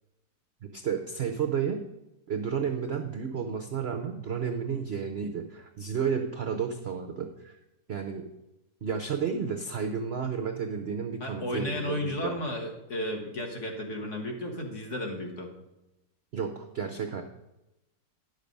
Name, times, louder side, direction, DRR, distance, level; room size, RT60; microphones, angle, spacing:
voice 1, 0.6-1.8 2.3-7.6 7.9-8.3 8.8-12.4 16.3-17.2, right 6 dB, 65° right, 6 dB, 0.6 m, -32 dB
voice 2, 11.2-15.5, left 1 dB, 45° left, 1 dB, 1.6 m, -33 dB
10.0 x 6.6 x 5.2 m, 0.93 s
omnidirectional pair, 2.0 m